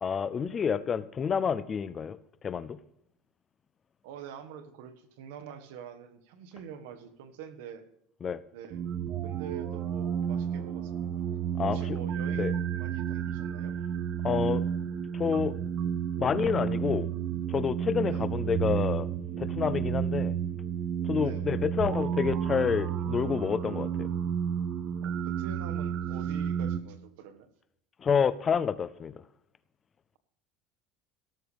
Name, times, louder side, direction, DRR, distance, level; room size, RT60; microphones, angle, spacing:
voice 1, 0.0-2.2 2.4-2.8 8.2-8.4 11.6-12.0 12.4-12.5 14.2-14.6 15.1-15.6 16.2-17.1 17.5-19.1 19.4-20.3 21.0-24.1 28.0-29.1, left 6 dB, 20° left, 16 dB, 0.4 m, -28 dB
voice 2, 4.0-7.8 8.5-8.8 9.2-11.1 11.6-13.7 18.1-18.2 21.2-21.5 25.0-27.5, right 8 dB, 75° right, 8 dB, 1.6 m, -45 dB
sound 1, 8.7-26.8, right 8 dB, 35° right, 0.5 m, -31 dB
17.0 x 13.5 x 3.4 m, 0.81 s
cardioid pair, 175°, 0 cm